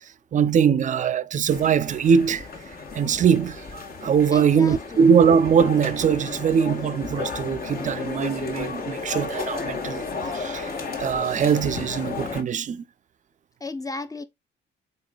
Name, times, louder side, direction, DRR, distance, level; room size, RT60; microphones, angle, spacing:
voice 1, 0.3-2.5 2.9-10.0 10.3-12.8, right 7 dB, 40° right, 0.4 m, -21 dB
sound 1, 1.5-12.4, left 4 dB, 50° left, 1.4 m, -33 dB
voice 2, 4.3-5.1 13.6-14.2, left 3 dB, 15° left, 0.6 m, -34 dB
4.0 x 3.6 x 2.2 m
cardioid pair, 90°, 20 cm